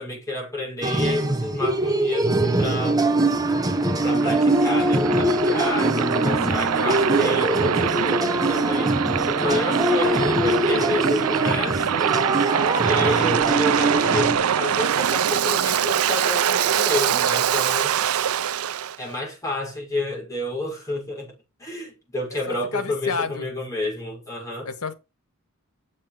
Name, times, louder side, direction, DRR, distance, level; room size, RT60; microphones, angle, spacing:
voice 1, 0.0-3.0 4.0-8.9 9.3-12.1 12.8-17.9 19.0-21.3 21.6-24.7, left 2 dB, 15° left, 5.6 m, -30 dB
sound 1, 0.8-14.4, right 1 dB, 15° right, 0.9 m, -23 dB
Waves surf, 3.2-19.0, right 8 dB, 75° right, 0.5 m, -24 dB
voice 2, 22.5-23.5 24.6-24.9, left 4 dB, 90° left, 1.5 m, -29 dB
7.5 x 7.1 x 5.0 m
head